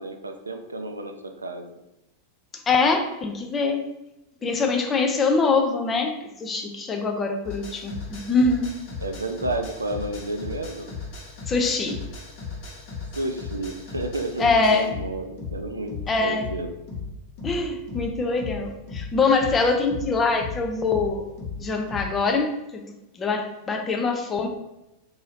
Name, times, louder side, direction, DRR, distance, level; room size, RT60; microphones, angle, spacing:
voice 1, 0.0-1.7 9.0-10.9 13.2-16.7, right 2 dB, 80° right, 6 dB, 0.3 m, -31 dB
voice 2, 2.5-3.9 4.4-8.8 11.5-12.0 14.4-14.9 16.1-16.4 17.4-21.2 21.6-24.5, left 4 dB, 20° left, 4 dB, 0.4 m, -24 dB
sound 1, 7.4-22.2, left 4 dB, 45° left, 1.1 m, -36 dB
2.7 x 2.6 x 3.2 m, 0.92 s
figure-of-eight pair, 90°, 0 cm